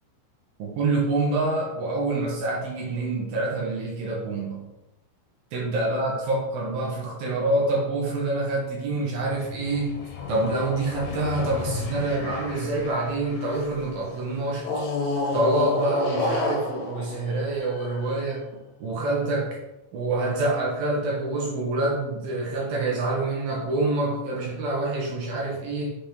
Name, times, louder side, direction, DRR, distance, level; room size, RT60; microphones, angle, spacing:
voice 1, 0.6-4.6 5.5-10.0 10.3-14.7 15.3-18.4 18.8-19.5 19.9-25.9, right 2 dB, 70° right, -3 dB, 2.3 m, -26 dB
sound 1, 9.2-13.8 14.6-18.2, left 3 dB, 75° left, 3.5 m, -31 dB
7.3 x 5.0 x 3.5 m, 0.96 s
omnidirectional pair, 5.6 m